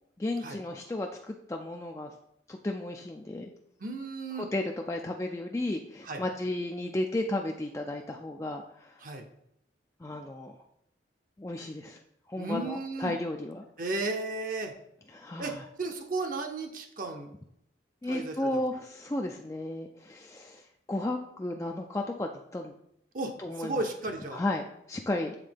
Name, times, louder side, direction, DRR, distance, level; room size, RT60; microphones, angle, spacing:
voice 1, 0.2-2.1 2.5-3.5 4.3-9.1 10.0-10.6 11.4-12.0 12.3-13.7 15.1-15.7 18.0-22.8 23.4-23.9 24.3-25.4, left 1 dB, 15° left, 2 dB, 0.3 m, -34 dB
voice 2, 3.8-4.5 6.0-6.2 9.0-9.2 12.4-13.2 13.8-14.7 15.4-17.3 18.1-18.6 23.1-24.4, right 2 dB, 45° right, 4 dB, 0.7 m, -34 dB
7.4 x 3.8 x 5.1 m, 0.74 s
head